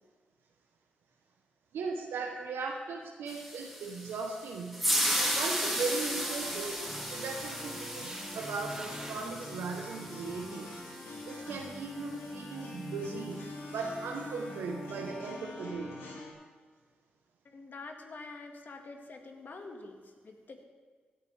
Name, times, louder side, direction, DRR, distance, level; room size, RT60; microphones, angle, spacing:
voice 1, 1.7-4.9 5.2-6.8 7.1-10.8 11.2-13.4 13.7-16.1, right 4 dB, 85° right, 1 dB, 0.9 m, -38 dB
sound 1, 3.3-11.6, equal, ahead, 2.5 m, -35 dB
sound 2, 3.6-4.2 4.8-4.9 5.2-9.3, right 1 dB, 15° right, 2.8 m, -49 dB
sound 3, 5.3-16.3, left 2 dB, 85° left, 2.7 m, -44 dB
voice 2, 17.5-20.6, left 3 dB, 55° left, 3 dB, 1.8 m, -47 dB
16.5 x 10.5 x 3.4 m, 1.5 s
supercardioid pair, 50°, 4 cm